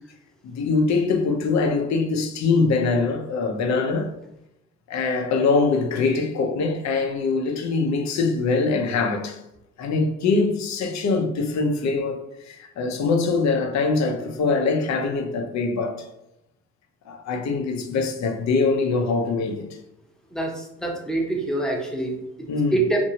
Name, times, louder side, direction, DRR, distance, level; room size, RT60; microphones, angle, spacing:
voice 1, 0.4-4.1 4.9-9.4 9.8-16.0 17.1-19.7 22.5-22.8, left 4 dB, 65° left, 0.6 m, -23 dB
voice 2, 20.3-23.0, right 2 dB, ahead, 0.7 m, -26 dB
2.8 x 2.6 x 2.8 m
cardioid pair, 90°, 30 cm